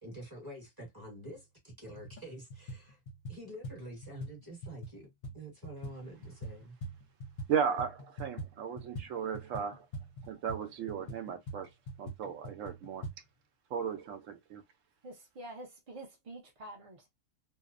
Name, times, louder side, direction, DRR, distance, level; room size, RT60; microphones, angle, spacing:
voice 1, 0.0-3.0 3.3-5.1 5.3-6.8, right 1 dB, 20° right, 0.9 m, -47 dB
sound 1, 1.4-1.5 1.9-2.2 2.5-7.5 7.8-13.2, right 1 dB, 45° left, 0.6 m, -44 dB
voice 2, 7.5-9.9 10.3-11.7 12.0-13.1 13.7-14.6, right 7 dB, 75° right, 0.9 m, -35 dB
voice 3, 15.0-17.1, right 1 dB, 45° right, 0.4 m, -47 dB
2.7 x 2.0 x 2.4 m
omnidirectional pair, 1.4 m